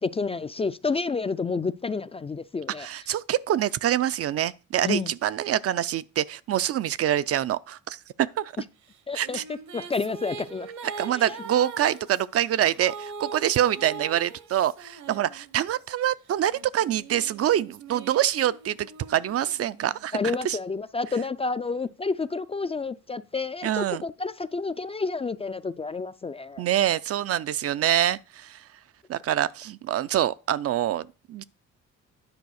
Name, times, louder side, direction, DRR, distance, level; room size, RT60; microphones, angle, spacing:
voice 1, 0.0-2.9 4.8-5.1 9.1-10.7 11.1-11.2 20.1-26.6, left 4 dB, 20° left, 0.3 m, -30 dB
voice 2, 2.8-8.5 9.1-9.4 11.0-20.2 20.4-20.6 23.6-24.0 26.6-28.6 29.1-31.4, right 11 dB, 50° right, 0.4 m, -25 dB
sound 1, 8.9-15.9 16.5-20.2, right 5 dB, 70° right, 1.1 m, -42 dB
9.7 x 4.1 x 6.3 m
cardioid pair, 90°, 30 cm